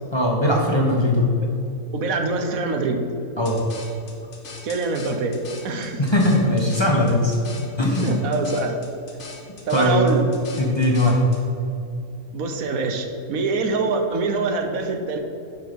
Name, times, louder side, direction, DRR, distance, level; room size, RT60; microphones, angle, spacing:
voice 1, 0.1-1.3 3.4-3.6 6.0-7.3 7.8-8.1 9.7-10.0 10.6-11.2, left 1 dB, 20° left, -2 dB, 1.1 m, -19 dB
voice 2, 1.9-3.0 4.6-5.4 5.6-6.0 8.0-8.8 9.7-10.3 12.3-15.2, right 3 dB, 75° right, 5 dB, 1.3 m, -24 dB
sound 1, 3.5-11.4, left 3 dB, 55° left, 1.6 m, -41 dB
10.5 x 4.7 x 5.3 m, 2.6 s
omnidirectional pair, 1.5 m